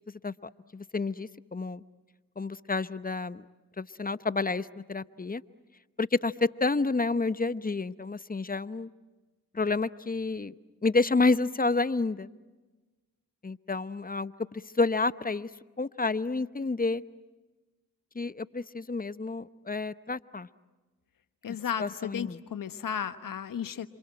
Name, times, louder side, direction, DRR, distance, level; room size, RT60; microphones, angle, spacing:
voice 1, 0.2-1.8 2.4-3.4 3.8-5.4 6.0-6.3 6.6-8.9 9.5-10.5 10.8-12.3 13.4-15.5 15.8-17.0 18.1-20.5 21.5-22.4, left 3 dB, 25° left, 15 dB, 0.9 m, -29 dB
voice 2, 21.4-23.9, left 8 dB, 65° left, 11 dB, 1.3 m, -34 dB
29.0 x 27.0 x 7.7 m, 1.2 s
supercardioid pair, 40°, 36 cm